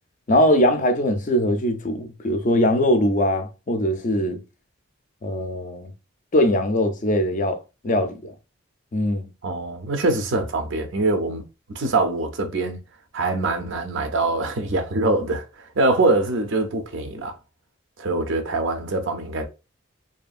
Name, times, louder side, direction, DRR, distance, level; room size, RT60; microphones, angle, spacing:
voice 1, 0.3-4.4 5.2-5.9 6.3-7.6 7.8-8.3 8.9-9.3, left 1 dB, 40° left, 0.4 m, -21 dB
voice 2, 9.4-11.4 11.7-12.8 13.1-17.3 18.0-19.5, right 2 dB, 70° right, 0.6 m, -23 dB
2.7 x 2.4 x 2.4 m
head